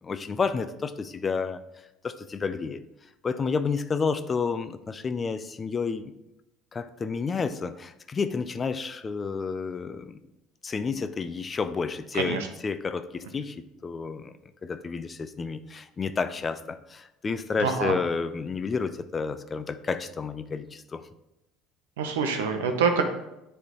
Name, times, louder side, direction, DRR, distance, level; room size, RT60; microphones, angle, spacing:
voice 1, 0.0-1.6 2.0-2.8 3.2-6.0 6.7-10.2 10.6-14.3 14.6-21.0, left 5 dB, 30° left, 0.5 m, -30 dB
voice 2, 17.6-18.0 22.0-23.0, right 5 dB, 90° right, 0.8 m, -25 dB
9.6 x 3.4 x 3.1 m
hypercardioid pair, 80°, 0 cm